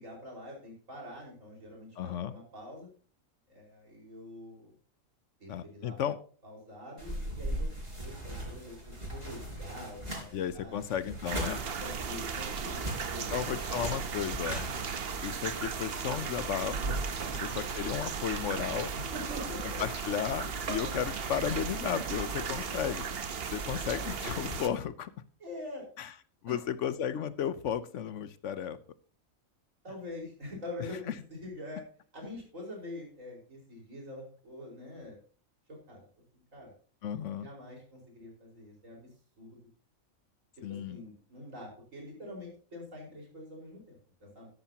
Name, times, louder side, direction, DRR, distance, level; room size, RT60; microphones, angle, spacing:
voice 1, 0.0-2.9 3.5-4.7 5.4-6.1 6.4-10.8 11.8-13.4 17.2-17.6 18.9-19.8 25.4-25.9 26.5-26.6 29.8-31.8 32.1-35.2 35.7-36.1 36.3-36.7 37.1-39.1 39.4-39.7 40.5-44.5, left 1 dB, 65° right, -1 dB, 5.4 m, -45 dB
voice 2, 2.0-2.3 5.5-6.2 10.3-11.6 13.3-14.7 15.2-17.1 17.4-18.9 19.6-23.0 23.5-25.1 26.0-26.1 26.4-28.8 37.0-37.5 40.6-41.0, left 8 dB, 65° left, 15 dB, 1.0 m, -34 dB
sound 1, 7.0-14.9, equal, 30° right, 5.0 m, -40 dB
sound 2, 11.3-24.7, right 5 dB, 50° right, 1.1 m, -36 dB
13.0 x 11.5 x 2.9 m, 0.41 s
omnidirectional pair, 1.4 m